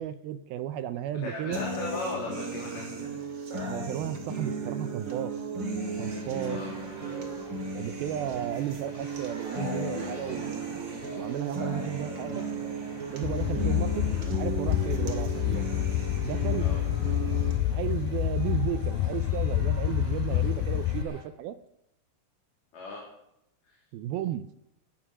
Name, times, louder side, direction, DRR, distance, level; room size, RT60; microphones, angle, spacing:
voice 1, 0.0-1.6 3.6-5.3 6.0-6.6 7.7-10.8 11.2-12.4 13.1-14.0 14.3-15.7 16.2-16.7 17.7-21.6 23.9-24.5, right 11 dB, 80° right, 11 dB, 2.3 m, -34 dB
voice 2, 1.2-3.0 6.5-6.7 16.6-16.8 22.7-23.0, left 2 dB, 50° left, -4 dB, 4.6 m, -36 dB
sound 1, 1.5-17.5, right 3 dB, 35° right, 2.3 m, -35 dB
sound 2, 5.7-21.2, equal, 20° right, 4.4 m, -47 dB
sound 3, 13.2-21.0, left 13 dB, 80° left, 2.1 m, -28 dB
18.5 x 10.5 x 6.1 m, 0.82 s
omnidirectional pair, 4.9 m